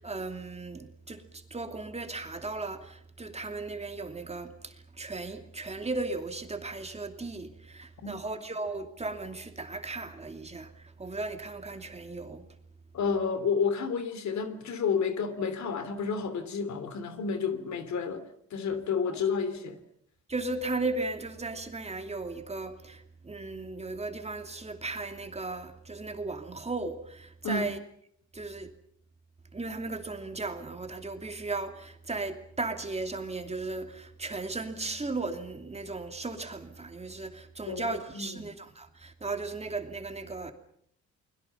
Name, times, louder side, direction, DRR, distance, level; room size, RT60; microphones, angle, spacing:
voice 1, 0.0-12.4 19.1-19.2 20.3-27.8 28.3-28.7 29.5-40.5, right 3 dB, 20° right, 2.7 m, -36 dB
voice 2, 12.9-18.2 18.5-19.8 27.4-27.7 37.7-38.4, left 5 dB, 65° left, 3.0 m, -30 dB
29.0 x 22.0 x 5.8 m
cardioid pair, 90°, 30 cm